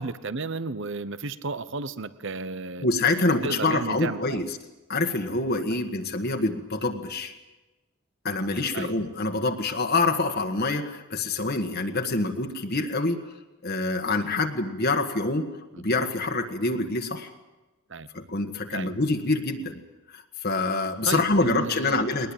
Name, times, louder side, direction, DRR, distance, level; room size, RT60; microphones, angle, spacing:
voice 1, 0.0-2.8 3.4-4.4 8.7-8.9 15.8-15.9 17.9-18.1 18.7-18.9 21.0-22.0, right 3 dB, 60° right, 15 dB, 0.9 m, -33 dB
voice 2, 2.8-4.6 4.9-7.3 8.2-13.2 13.6-15.5 15.8-17.3 18.1-19.8 20.1-22.3, left 2 dB, 45° left, 5 dB, 1.6 m, -26 dB
21.0 x 20.0 x 8.8 m, 1.1 s
head